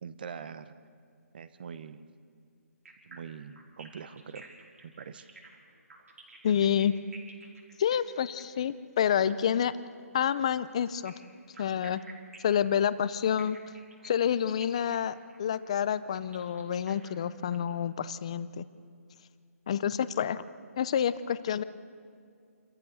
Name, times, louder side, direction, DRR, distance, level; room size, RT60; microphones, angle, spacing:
voice 1, 0.0-0.7 1.3-2.0 3.0-4.5 4.8-5.3, right 6 dB, 35° right, 12 dB, 0.9 m, -43 dB
sound 1, 2.9-9.6 10.9-17.6, right 3 dB, 65° right, 4.8 m, -52 dB
voice 2, 6.4-6.9 7.8-9.7 10.1-11.1 11.6-12.0 12.4-13.6 14.0-18.7 19.7-20.4 20.8-21.6, left 9 dB, 20° left, 15 dB, 0.4 m, -28 dB
28.0 x 14.0 x 6.7 m, 2.2 s
hypercardioid pair, 175°, 9 cm